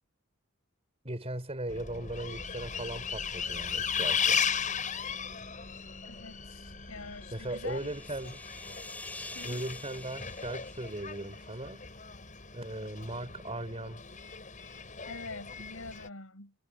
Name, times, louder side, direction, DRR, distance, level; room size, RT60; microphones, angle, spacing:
voice 1, 1.0-4.4 7.3-8.4 9.4-11.8 12.5-14.0, right 1 dB, 30° right, 4.7 m, -38 dB
Bus, 1.7-16.1, left 7 dB, 40° left, 7.5 m, -36 dB
voice 2, 6.0-8.3 9.3-9.7 15.1-16.5, left 3 dB, 80° left, 5.9 m, -45 dB
sound 1, 6.4-12.0, left 2 dB, 5° left, 7.0 m, -48 dB
head